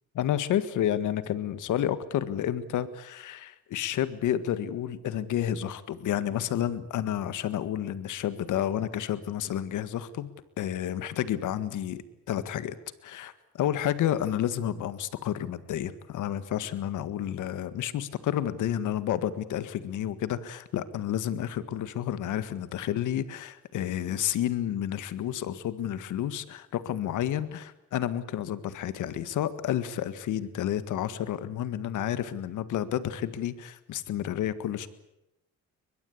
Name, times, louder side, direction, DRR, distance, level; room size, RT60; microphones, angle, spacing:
voice 1, 0.2-10.3 10.6-12.8 13.0-34.9, left 11 dB, 80° left, 13 dB, 1.7 m, -30 dB
23.0 x 21.5 x 8.5 m, 0.88 s
cardioid pair, 90°, 30 cm